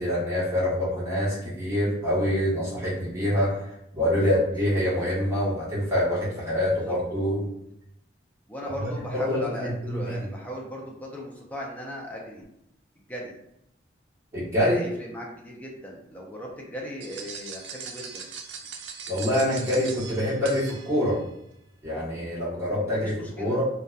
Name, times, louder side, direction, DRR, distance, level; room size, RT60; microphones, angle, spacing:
voice 1, 0.0-3.7 3.9-7.4 9.1-10.1 14.3-14.8 19.1-21.2 21.8-23.6, left 1 dB, 15° right, -10 dB, 1.1 m, -25 dB
voice 2, 4.0-4.4 6.7-6.9 8.5-12.5 13.0-13.4 14.6-18.2 22.7-23.6, equal, 10° left, -2 dB, 0.4 m, -38 dB
sound 1, 17.0-21.3, right 6 dB, 80° right, 0.3 m, -40 dB
2.7 x 2.2 x 2.3 m, 0.79 s
head